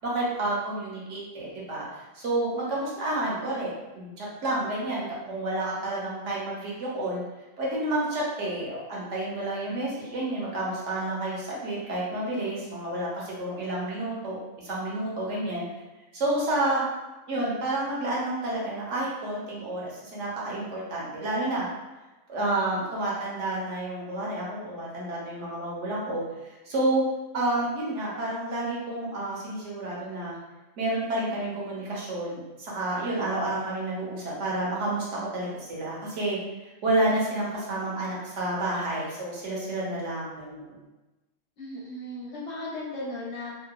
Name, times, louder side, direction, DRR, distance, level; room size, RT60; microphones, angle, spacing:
voice 1, 0.0-7.2 7.6-15.6 16.1-16.8 17.3-21.7 22.3-26.2 26.7-27.0 27.3-30.4 30.8-35.1 35.3-36.4 36.8-40.7, right 1 dB, 70° right, -5 dB, 1.0 m, -30 dB
voice 2, 41.6-43.5, left 1 dB, 65° left, -6 dB, 0.9 m, -36 dB
2.8 x 2.1 x 2.2 m, 1.1 s
omnidirectional pair, 1.3 m